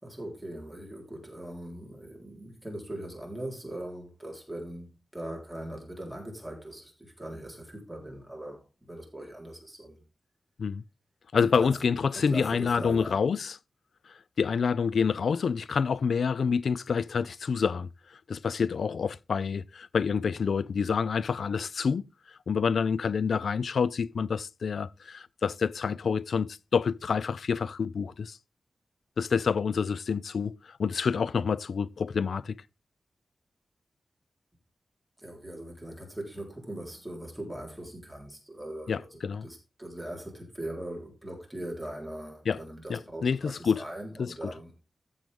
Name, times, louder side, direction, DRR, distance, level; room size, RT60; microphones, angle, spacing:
voice 1, 0.0-10.0 11.4-11.8 12.1-13.2 35.2-44.8, right 1 dB, 5° right, 4.0 m, -40 dB
voice 2, 11.3-13.6 14.4-17.9 18.3-22.0 22.5-28.4 29.2-32.6 38.9-39.5 42.5-42.6 42.9-43.8 44.2-44.3, left 6 dB, 80° left, 0.5 m, -27 dB
13.5 x 7.8 x 3.5 m
wide cardioid pair, 165°, 0 cm